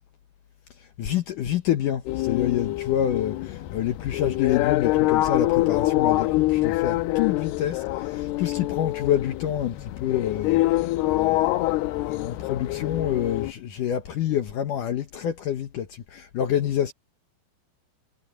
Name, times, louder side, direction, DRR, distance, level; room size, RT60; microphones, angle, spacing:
voice 1, 1.0-16.9, left 10 dB, 65° left, 2.4 m, -28 dB
sound 1, 2.1-13.5, left 18 dB, 90° left, 2.9 m, -25 dB
omnidirectional pair, 4.5 m